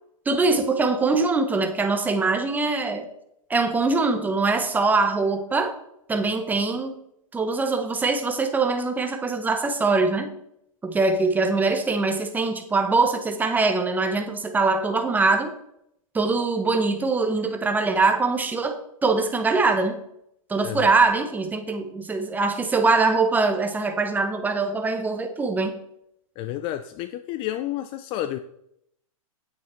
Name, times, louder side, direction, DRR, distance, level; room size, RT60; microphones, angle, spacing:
voice 1, 0.3-3.1 3.5-5.7 6.1-6.9 7.3-10.3 10.8-15.5 16.1-19.9 20.5-25.7, right 3 dB, 10° right, 1.0 m, -23 dB
voice 2, 26.4-28.4, left 13 dB, 30° left, 0.4 m, -30 dB
9.3 x 8.4 x 4.4 m
hypercardioid pair, 140°, 18 cm